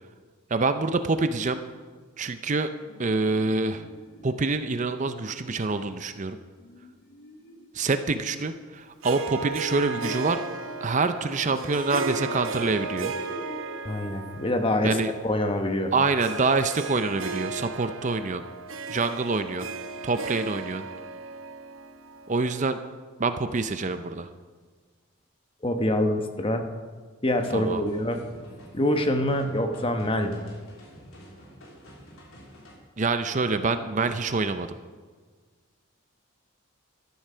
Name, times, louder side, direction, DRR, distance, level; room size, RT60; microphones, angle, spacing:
voice 1, 0.5-1.6 2.2-2.7 3.0-3.8 4.2-6.4 7.7-10.4 10.8-13.1 14.8-15.1 15.9-18.4 18.9-19.7 20.0-20.9 22.3-22.8 23.2-24.3 27.5-27.8 33.0-34.7, right 3 dB, 35° right, 10 dB, 0.5 m, -26 dB
sound 1, 2.4-16.4, left 1 dB, 50° left, 1.3 m, -47 dB
Harp, 9.0-22.7, right 4 dB, 70° right, 1.0 m, -35 dB
voice 2, 13.8-15.9 25.6-26.7 27.2-28.2 28.7-30.4, left 1 dB, 25° left, 6 dB, 1.1 m, -25 dB
sound 2, 27.3-32.7, equal, 80° left, 3.6 m, -48 dB
14.0 x 12.5 x 5.6 m, 1.5 s
head